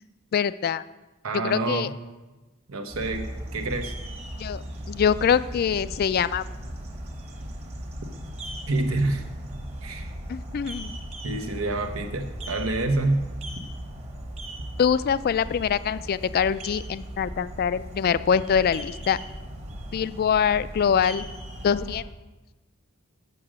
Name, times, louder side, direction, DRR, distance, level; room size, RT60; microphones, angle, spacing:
voice 1, 0.3-0.8 1.3-1.9 4.4-6.4 10.3-11.0 14.8-19.2 19.9-21.3 21.6-22.0, left 7 dB, 45° left, 16 dB, 0.3 m, -24 dB
voice 2, 1.2-1.9 2.7-3.9 8.7-9.2 9.8-10.1 11.2-13.2, right 2 dB, 90° right, 6 dB, 1.0 m, -27 dB
sound 1, 2.9-22.0, right 1 dB, 30° right, 1.2 m, -37 dB
6.8 x 6.3 x 7.5 m, 1.1 s
head